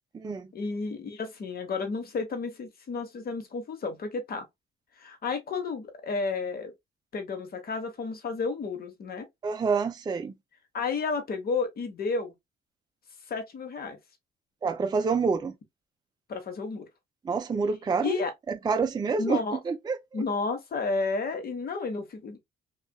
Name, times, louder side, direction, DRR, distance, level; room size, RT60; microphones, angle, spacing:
voice 1, 0.5-4.5 5.0-6.7 7.1-9.3 10.7-12.3 13.3-14.0 16.3-16.9 18.0-18.3 19.2-19.6 20.1-22.4, left 4 dB, 50° left, 1.0 m, -31 dB
voice 2, 9.4-10.3 14.6-15.5 17.2-18.1 18.5-20.2, right 5 dB, 20° right, 0.4 m, -27 dB
2.5 x 2.4 x 2.2 m
supercardioid pair, 60°, 20 cm